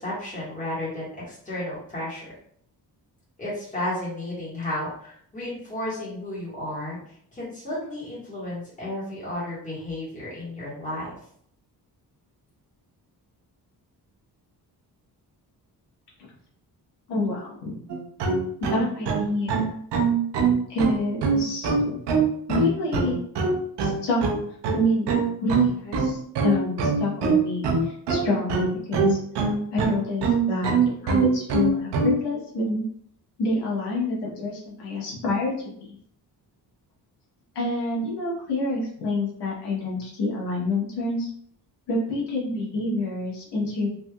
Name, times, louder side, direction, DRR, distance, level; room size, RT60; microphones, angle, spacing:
voice 1, 0.0-2.3 3.4-7.0 7.3-11.1, left 1 dB, 20° left, -8 dB, 1.5 m, -33 dB
voice 2, 17.1-17.8 18.6-19.7 20.7-22.0 22.5-23.2 23.8-24.2 24.7-25.1 25.4-29.2 29.7-32.8 33.4-35.5 35.8-35.9 37.5-41.3 41.9-43.9, left 2 dB, 85° left, -5 dB, 1.1 m, -27 dB
sound 1, 17.9-32.2, right 4 dB, 90° right, 0.6 m, -23 dB
3.3 x 2.7 x 2.3 m, 0.64 s
wide cardioid pair, 155°, 40 cm